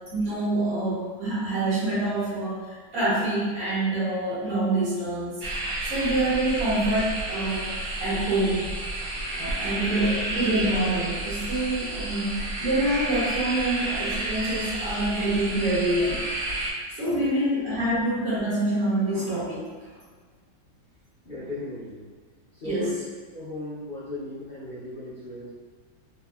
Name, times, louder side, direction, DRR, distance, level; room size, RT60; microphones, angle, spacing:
voice 1, 0.1-2.6 2.9-5.4 5.9-8.7 9.4-16.2 17.0-19.6 22.6-22.9, right 1 dB, 55° right, -10 dB, 1.5 m, -26 dB
sound 1, 5.4-16.7, right 1 dB, 70° right, 0.8 m, -31 dB
voice 2, 9.1-9.7 16.9-17.3 21.2-22.1 22.5-22.9 23.3-25.5, left 2 dB, 80° left, -13 dB, 0.4 m, -37 dB
3.4 x 2.1 x 2.3 m, 1.5 s
omnidirectional pair, 2.0 m